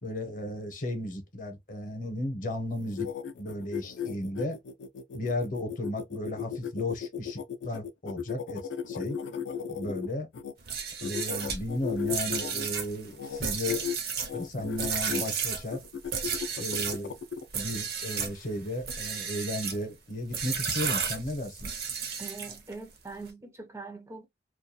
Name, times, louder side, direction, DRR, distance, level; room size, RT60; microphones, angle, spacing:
voice 1, 0.0-3.1 3.4-4.6 5.1-8.6 8.9-9.2 9.7-10.3 11.0-13.9 14.3-15.8 16.6-17.1 17.5-21.7, left 1 dB, 50° left, 0.7 m, -34 dB
sound 1, 2.7-10.5 11.0-12.7 13.1-13.4 13.7-14.0 14.3-15.2 15.7-17.4, left 8 dB, 80° left, 0.4 m, -35 dB
sound 2, 10.6-17.0 17.5-18.4 18.8-19.8 20.3-22.7, right 6 dB, 60° right, 0.6 m, -33 dB
voice 2, 22.2-24.3, right 3 dB, 15° right, 0.4 m, -42 dB
2.3 x 2.2 x 2.6 m
head